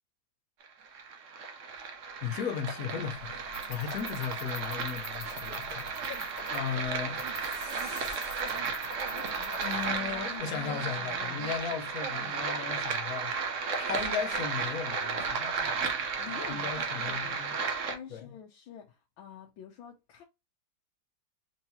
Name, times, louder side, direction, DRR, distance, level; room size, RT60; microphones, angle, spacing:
sound 1, 0.6-18.0, right 5 dB, 55° right, 0.9 m, -34 dB
Human voice, 0.8-0.9 1.7-2.0 2.6-2.7 3.1-3.3 3.6-3.7 4.1-4.4 4.7-5.7 6.0-6.3 6.5-12.8, right 9 dB, 75° right, 1.2 m, -48 dB
voice 1, 2.2-5.9 6.5-8.6 9.6-13.3 13.8-15.7 16.3-17.5 18.1-18.3, left 7 dB, 55° left, 1.2 m, -37 dB
sound 2, 3.1-10.4, left 2 dB, 35° left, 1.6 m, -49 dB
voice 2, 3.8-4.3 6.1-6.3 7.3-7.7 9.0-9.7 10.1-11.4 16.2-17.4 17.9-20.2, left 8 dB, 80° left, 1.6 m, -47 dB
4.6 x 2.8 x 2.8 m
omnidirectional pair, 2.1 m